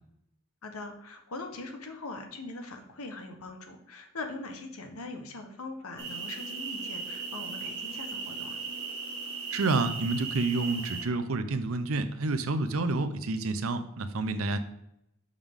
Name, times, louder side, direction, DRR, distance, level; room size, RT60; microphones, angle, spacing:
voice 1, 0.6-8.6, left 2 dB, 90° left, 5 dB, 1.1 m, -41 dB
sound 1, 6.0-11.0, right 4 dB, 25° right, 1.8 m, -37 dB
voice 2, 9.5-14.6, right 3 dB, 75° right, 11 dB, 0.6 m, -29 dB
6.5 x 5.4 x 3.6 m, 0.81 s
head